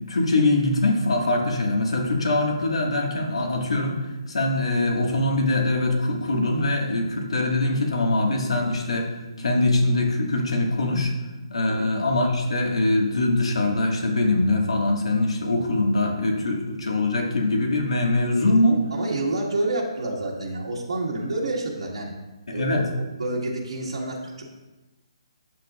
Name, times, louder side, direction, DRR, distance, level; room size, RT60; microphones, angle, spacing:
voice 1, 0.1-4.0 4.3-9.1 9.4-11.1 11.5-18.8 22.5-22.9, left 2 dB, 85° left, 1 dB, 1.8 m, -23 dB
voice 2, 18.9-22.1 22.5-22.8 23.2-24.4, right 2 dB, 85° right, -3 dB, 1.8 m, -28 dB
8.2 x 7.8 x 2.5 m, 1.1 s
hypercardioid pair, 180°, 3 cm